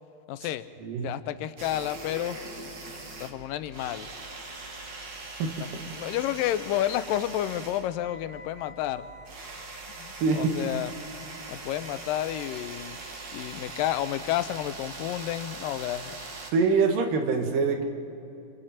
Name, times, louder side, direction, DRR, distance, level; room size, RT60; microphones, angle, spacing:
voice 1, 0.3-0.6 1.0-2.4 3.2-4.1 5.6-5.7 6.0-9.1 10.0-10.9 11.5-13.0 13.3-16.1, left 13 dB, 85° left, 12 dB, 2.4 m, -30 dB
sound 1, 1.6-16.5, right 3 dB, 40° right, 2.0 m, -42 dB
voice 2, 10.2-10.7 16.5-17.8, right 4 dB, 75° right, 4 dB, 3.2 m, -24 dB
28.0 x 26.0 x 4.4 m, 2.8 s
omnidirectional pair, 3.9 m